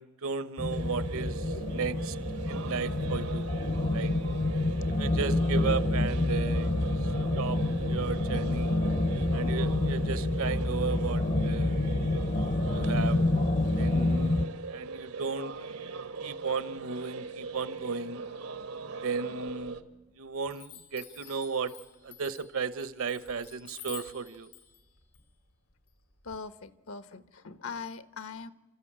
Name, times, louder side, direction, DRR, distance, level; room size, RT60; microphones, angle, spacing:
voice 1, 0.0-2.2 2.4-3.5 3.9-4.1 4.9-6.7 7.4-8.8 9.3-11.8 12.7-13.2 13.8-15.8 16.2-18.2 19.0-19.8 20.2-21.7 22.0-24.5, right 5 dB, 70° right, 15 dB, 0.9 m, -35 dB
sound 1, 0.6-14.5, left 2 dB, 35° left, 0.6 m, -28 dB
sound 2, 0.7-19.8, right 4 dB, 90° right, 1.3 m, -40 dB
Chime, 19.5-20.1 20.5-26.4, left 11 dB, 90° left, 2.9 m, -50 dB
voice 2, 26.2-28.5, left 5 dB, 70° left, 13 dB, 1.0 m, -41 dB
29.5 x 13.5 x 8.7 m, 1.2 s
head